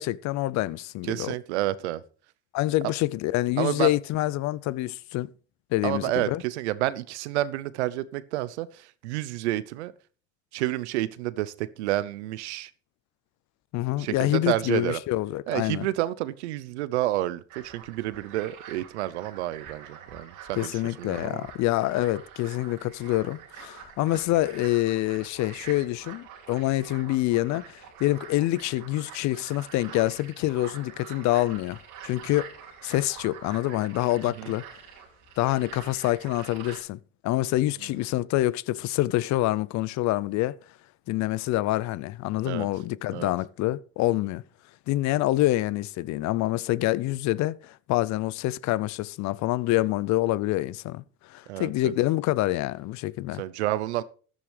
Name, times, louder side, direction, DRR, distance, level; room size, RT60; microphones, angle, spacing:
voice 1, 0.0-1.3 2.5-5.3 5.7-6.4 13.7-15.9 20.6-32.5 32.8-34.6 35.4-40.6 41.1-44.4 44.9-53.4, left 16 dB, 55° left, 0.6 m, -26 dB
voice 2, 1.0-2.0 3.6-3.9 5.8-9.9 10.5-12.7 14.0-15.0 15.5-21.5 34.2-34.5 37.8-38.0 42.4-42.7 43.1-43.3 51.5-51.9 53.4-54.0, right 15 dB, 85° right, 0.7 m, -30 dB
sound 1, 17.5-36.8, right 8 dB, 65° right, 2.6 m, -46 dB
14.0 x 11.5 x 3.3 m
hypercardioid pair, 65°, 33 cm